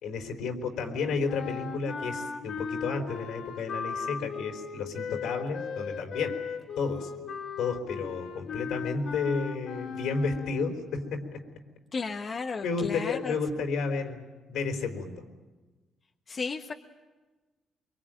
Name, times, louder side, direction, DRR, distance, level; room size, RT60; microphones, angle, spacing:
voice 1, 0.0-6.4 6.8-7.1 7.6-11.4 12.6-15.2, left 4 dB, 80° left, 5 dB, 4.2 m, -32 dB
sound 1, 1.3-10.8, left 6 dB, 65° left, 2.8 m, -37 dB
voice 2, 11.9-13.3 16.3-16.7, left 4 dB, 40° left, 3 dB, 1.4 m, -34 dB
24.5 x 23.5 x 9.1 m, 1.2 s
cardioid pair, 90°, 0 cm